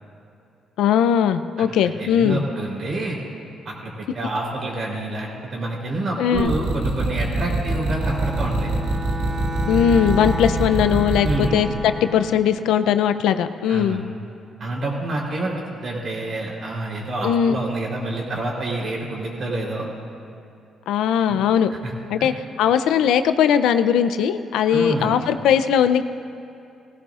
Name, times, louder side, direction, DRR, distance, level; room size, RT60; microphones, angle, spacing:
voice 1, 0.8-2.4 6.2-6.5 9.7-14.0 17.2-17.6 20.9-21.7 22.1-26.0, left 8 dB, 85° left, 11 dB, 0.5 m, -19 dB
voice 2, 2.0-3.2 3.7-8.7 11.2-11.6 13.7-14.0 14.6-19.9 21.2-21.4 21.7-21.9 22.2-22.3 24.7-25.2, right 2 dB, 50° right, -2 dB, 3.6 m, -28 dB
sound 1, 6.3-11.5, right 2 dB, 80° right, 1.7 m, -24 dB
Bowed string instrument, 7.9-12.4, left 1 dB, 10° right, 3.4 m, -32 dB
18.5 x 16.0 x 2.5 m, 2.6 s
cardioid pair, 90°, 0 cm